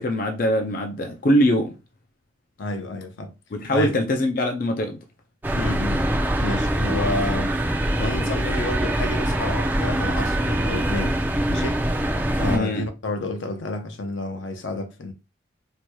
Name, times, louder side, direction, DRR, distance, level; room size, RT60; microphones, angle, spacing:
voice 1, 0.0-1.7 3.5-5.0 12.5-12.9, equal, 45° left, 0.4 m, -22 dB
voice 2, 2.6-3.3 3.6-4.0 5.5-6.1 6.4-7.6 8.0-11.9 12.4-15.1, left 2 dB, 80° left, 0.7 m, -30 dB
Mall Distant Music, 5.4-12.6, right 1 dB, 10° right, 0.5 m, -23 dB
4.5 x 2.8 x 2.2 m
head